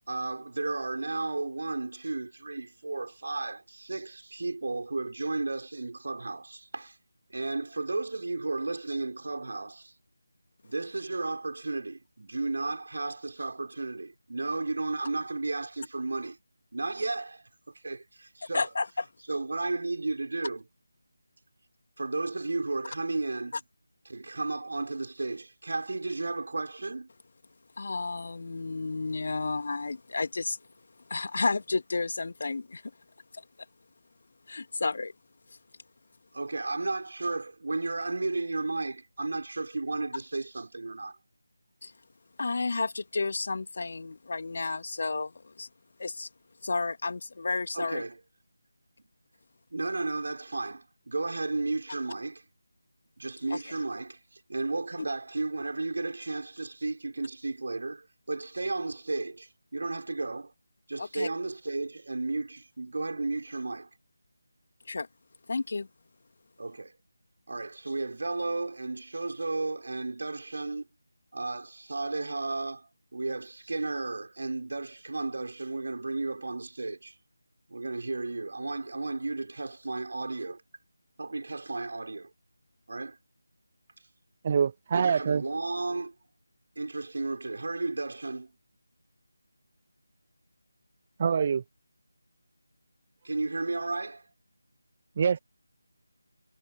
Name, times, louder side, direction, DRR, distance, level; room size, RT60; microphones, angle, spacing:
voice 1, 0.1-7.0 7.3-9.9 10.6-16.4 16.7-17.4 17.8-18.7 19.3-20.6 22.0-23.6 24.1-27.1 36.3-41.2 47.7-48.2 49.7-52.4 53.2-60.5 60.9-63.9 66.6-66.9 67.5-70.9 71.3-77.2 77.7-80.6 81.2-82.3 82.9-83.2 84.9-86.1 86.8-88.5 93.2-94.2, right 3 dB, 50° right, 5.3 m, -33 dB
voice 2, 18.5-19.1 27.8-30.6 31.1-32.8 33.3-33.4 34.5-35.1 41.8-41.9 42.4-45.7 46.0-46.3 46.6-48.0 53.5-53.6 61.0-61.3 64.9-65.1 65.5-65.9, left 3 dB, 45° left, 2.3 m, -31 dB
voice 3, 84.4-85.4 91.2-91.6 95.2-95.4, right 6 dB, 25° right, 1.3 m, -25 dB
figure-of-eight pair, 160°, 0 cm